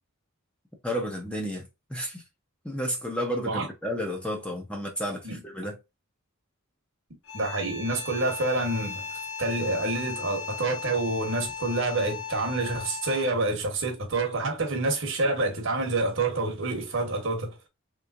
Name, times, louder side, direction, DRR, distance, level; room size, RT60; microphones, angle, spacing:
voice 1, 0.8-2.2 2.6-5.8, equal, 5° left, 0.7 m, -32 dB
sound 1, 7.2-13.5, left 6 dB, 75° left, 1.0 m, -37 dB
voice 2, 7.3-17.5, right 2 dB, 60° right, 1.1 m, -28 dB
3.3 x 3.1 x 2.5 m
head